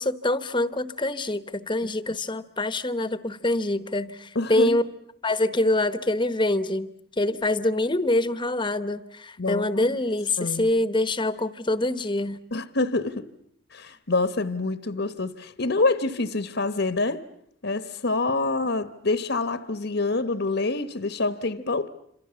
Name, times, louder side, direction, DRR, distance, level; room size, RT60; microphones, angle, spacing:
voice 1, 0.0-4.8 5.2-6.9 7.2-12.4, left 2 dB, 25° left, 1.0 m, -25 dB
voice 2, 4.3-4.8 9.4-10.0 10.4-10.7 12.5-13.3 13.7-17.2 17.6-21.9, left 3 dB, 60° left, 1.2 m, -26 dB
28.0 x 27.0 x 7.0 m
head